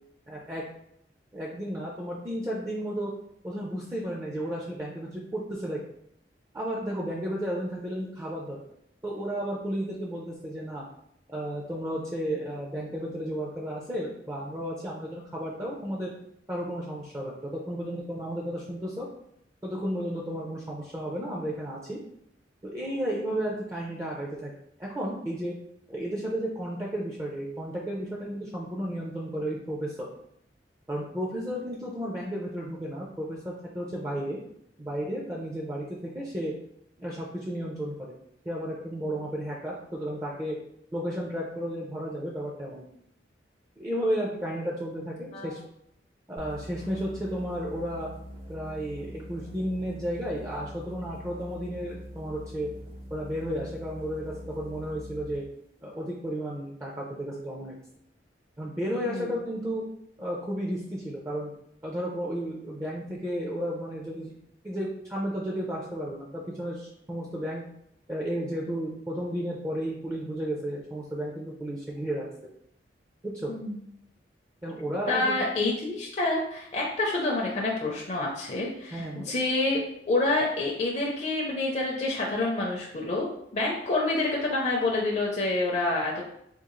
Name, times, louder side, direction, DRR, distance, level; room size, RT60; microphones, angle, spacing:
voice 1, 0.3-0.6 1.3-3.1 3.4-5.8 6.5-8.6 9.0-10.8 11.3-16.1 16.5-19.1 19.6-22.0 22.6-24.5 24.8-25.5 25.9-30.0 30.9-34.4 34.8-36.5 37.0-38.0 38.5-40.6 40.9-42.9 43.8-45.6 46.3-48.1 48.5-52.7 53.1-55.4 55.8-57.8 58.6-59.8 60.2-61.5 61.8-64.3 64.6-67.6 68.1-72.2 73.2-73.5 74.6-75.3 78.9-79.3, equal, 15° right, -4 dB, 0.4 m, -33 dB
sound 1, 46.4-55.5, equal, 50° right, 0.7 m, -43 dB
voice 2, 73.5-73.8 75.1-79.8 80.1-83.3 83.5-86.2, left 2 dB, 40° left, -2 dB, 0.5 m, -27 dB
3.7 x 2.4 x 3.0 m, 0.74 s
head